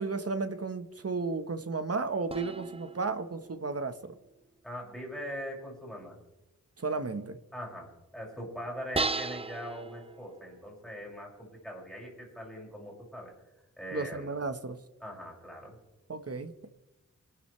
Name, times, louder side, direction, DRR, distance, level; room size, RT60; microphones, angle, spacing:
voice 1, 0.0-4.1 6.8-7.4 13.9-14.8 16.1-16.7, right 4 dB, 50° right, 9 dB, 1.5 m, -34 dB
sound 1, 2.3-4.4 8.9-10.8, right 3 dB, 20° right, 0.5 m, -37 dB
voice 2, 4.6-6.2 7.5-13.3 13.8-14.3 15.0-15.8, equal, ahead, -3 dB, 6.8 m, -41 dB
27.5 x 12.5 x 3.4 m, 1.0 s
wide cardioid pair, 90°, 30 cm